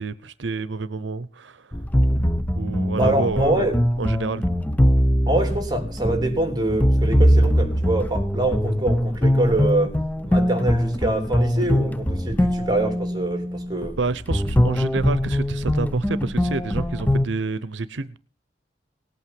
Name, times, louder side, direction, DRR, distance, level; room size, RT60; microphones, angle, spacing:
voice 1, 0.0-1.8 2.5-4.4 14.0-18.2, right 3 dB, 85° right, 0.7 m, -28 dB
sound 1, 1.7-17.3, equal, 10° left, 0.7 m, -22 dB
voice 2, 2.9-3.8 5.3-9.9 10.2-14.0, right 2 dB, 20° right, 3.4 m, -24 dB
18.5 x 8.7 x 7.6 m
head